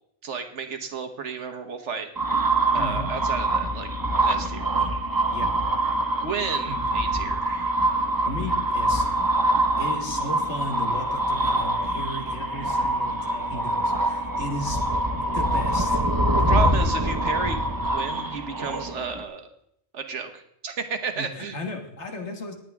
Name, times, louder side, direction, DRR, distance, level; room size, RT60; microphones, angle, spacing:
voice 1, 0.2-2.1 2.7-3.9 4.2-4.6 6.2-7.8 16.5-19.5 19.9-21.6, right 5 dB, 90° right, 6 dB, 1.5 m, -32 dB
sound 1, 2.2-19.2, right 1 dB, 20° right, 0.8 m, -24 dB
voice 2, 2.8-3.1 4.7-4.9 5.3-5.5 6.7-6.8 8.3-9.1 9.8-14.8 15.1-16.0 21.2-22.5, left 1 dB, 75° left, 3 dB, 1.9 m, -35 dB
18.5 x 9.1 x 3.5 m, 0.73 s
omnidirectional pair, 1.2 m